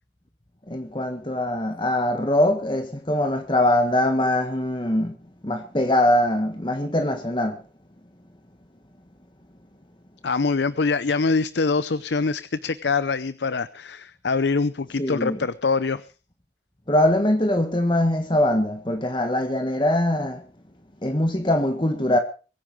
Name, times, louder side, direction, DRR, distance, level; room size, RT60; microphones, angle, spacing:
voice 1, 0.7-5.2 5.4-7.6 15.0-15.5 16.9-20.4 21.0-22.2, left 1 dB, 25° left, 1.5 m, -22 dB
voice 2, 10.2-16.1, left 4 dB, 75° left, 0.7 m, -24 dB
22.5 x 10.0 x 5.3 m
head